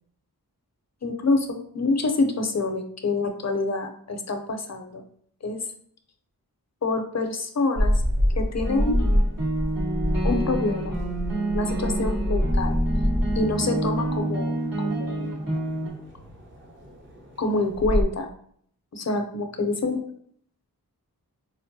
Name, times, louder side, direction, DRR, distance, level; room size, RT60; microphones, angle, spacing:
voice 1, 1.0-5.0 5.4-5.6 6.8-7.9 8.4-9.0 10.2-11.0 11.5-12.8 13.3-15.3 17.4-18.3 18.9-20.0, left 3 dB, 45° left, 5 dB, 0.5 m, -26 dB
sound 1, 7.8-18.0, equal, 30° right, 0.7 m, -27 dB
sound 2, 8.6-15.9, right 1 dB, 65° right, 1.5 m, -28 dB
4.4 x 2.0 x 2.7 m, 0.62 s
wide cardioid pair, 50°, 37 cm